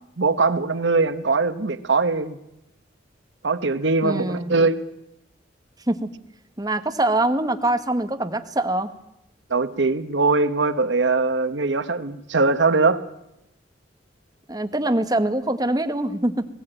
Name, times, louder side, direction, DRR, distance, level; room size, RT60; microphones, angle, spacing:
voice 1, 0.2-2.4 3.4-4.8 9.5-13.0, right 3 dB, 70° right, 12 dB, 1.0 m, -21 dB
voice 2, 4.0-4.5 5.9-6.1 6.6-8.9 14.5-16.5, right 1 dB, 20° right, 8 dB, 1.1 m, -23 dB
20.0 x 16.0 x 9.0 m, 0.83 s
head